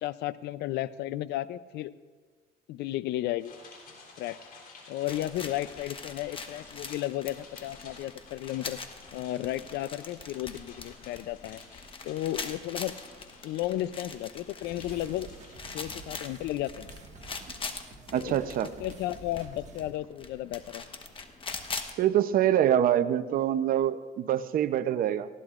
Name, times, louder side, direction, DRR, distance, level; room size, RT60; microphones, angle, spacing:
voice 1, 0.0-1.9 2.7-3.5 4.2-4.4 4.9-8.8 9.1-11.6 12.0-12.9 13.4-15.3 15.7-16.9 18.1-20.8, left 14 dB, 80° left, 16 dB, 0.5 m, -33 dB
sound 1, 3.4-16.0, left 4 dB, 60° left, 3.6 m, -52 dB
sound 2, 5.1-21.9, left 4 dB, 30° left, 1.1 m, -43 dB
sound 3, 14.6-19.9, right 4 dB, 45° right, 1.7 m, -50 dB
voice 2, 18.1-18.7 22.0-25.3, right 11 dB, 60° right, 11 dB, 0.7 m, -25 dB
19.5 x 15.5 x 2.5 m, 1.5 s
cardioid pair, 110°, 17 cm